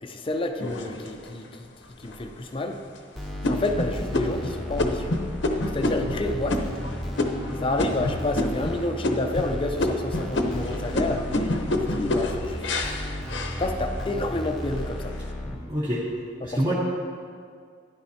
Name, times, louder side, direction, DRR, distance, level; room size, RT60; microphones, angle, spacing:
voice 1, 0.0-1.7 2.0-2.8 3.4-5.1 5.6-6.6 7.6-12.7 13.6-15.1 16.4-16.7, left 2 dB, 30° left, 5 dB, 0.5 m, -29 dB
sound 1, 0.6-1.5 2.0-2.1 2.6-3.0 3.4-8.7 9.0-9.5 9.8-14.1 14.6-15.1, left 2 dB, 80° left, 0.8 m, -28 dB
sound 2, 3.2-15.6, equal, ahead, 0.9 m, -34 dB
voice 2, 15.5-16.0 16.4-16.7, equal, 25° right, -6 dB, 1.1 m, -27 dB
12.5 x 10.5 x 2.8 m, 2.2 s
head